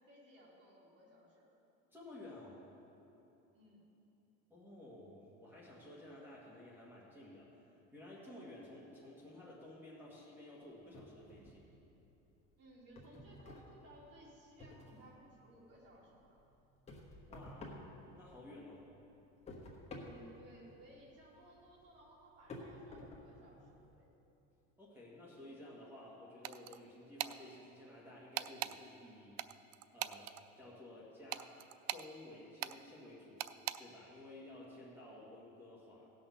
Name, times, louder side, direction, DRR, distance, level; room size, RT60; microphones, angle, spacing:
voice 1, 0.0-1.5 3.5-3.9 12.6-16.4 19.9-24.2, right 1 dB, 45° right, -4 dB, 3.2 m, -60 dB
voice 2, 1.9-2.6 4.5-11.7 17.3-17.7 18.1-18.8 24.8-29.4 29.9-30.3 30.6-31.5 31.9-33.4 33.8-36.1, left 1 dB, 5° right, -7 dB, 1.9 m, -54 dB
sound 1, 10.9-12.0 12.3-15.2 15.6-18.6 18.9-23.9, left 2 dB, 20° left, 1.4 m, -52 dB
sound 2, 26.4-26.8 27.2-27.4 28.4-28.8 29.4-30.4 31.3-32.1 32.6-32.8 33.4-33.8, right 15 dB, 75° right, 0.5 m, -40 dB
16.5 x 6.4 x 5.7 m, 2.9 s
cardioid pair, 150°, 33 cm